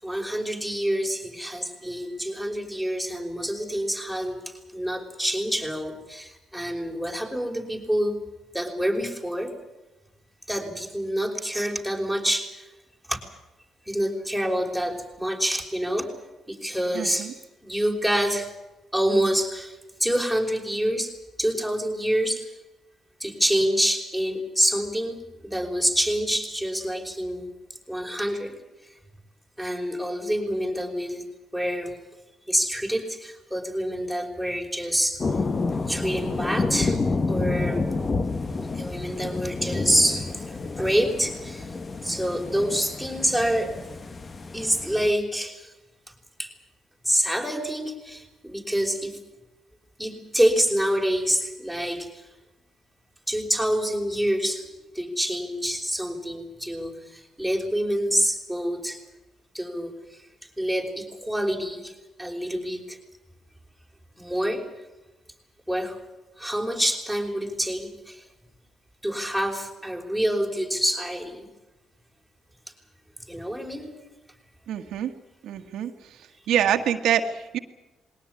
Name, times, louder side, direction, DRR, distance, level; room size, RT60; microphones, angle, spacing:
voice 1, 0.0-8.2 8.5-9.5 10.5-12.5 13.1-13.2 13.9-16.1 16.5-17.3 17.6-18.5 18.9-19.8 20.0-21.1 21.4-22.5 23.2-27.5 27.9-28.5 29.6-31.2 31.5-31.9 32.5-35.2 35.9-37.0 37.3-37.8 38.8-40.3 40.8-41.7 42.0-43.7 44.5-45.7 46.4-46.5 47.1-49.1 50.0-52.1 53.3-54.6 54.9-59.0 59.5-59.9 60.6-61.9 62.2-63.0 64.2-64.6 65.7-66.0 66.4-68.2 69.0-71.5 73.3-73.9, equal, 5° left, 3 dB, 5.6 m, -26 dB
voice 2, 16.9-17.3 74.7-75.1 75.4-75.9 76.5-77.6, right 9 dB, 80° right, 5 dB, 1.6 m, -25 dB
sound 1, 35.2-45.1, left 3 dB, 30° left, 1.4 m, -29 dB
21.5 x 18.5 x 9.8 m, 1.0 s
cardioid pair, 90°, 0 cm